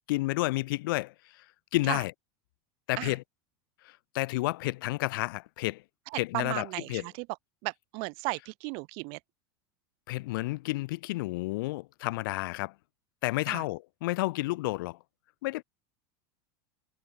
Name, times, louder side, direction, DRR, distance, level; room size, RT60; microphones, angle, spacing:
voice 1, 0.1-1.5 1.7-2.1 2.9-3.2 3.8-5.8 6.1-7.0 10.1-12.7 13.2-15.0 15.4-15.6, left 20 dB, 70° left, 1.1 m, -31 dB
voice 2, 6.1-7.3 7.6-9.2 13.5-13.6, right 34 dB, 50° right, 1.0 m, -35 dB
supercardioid pair, 155°, 12 cm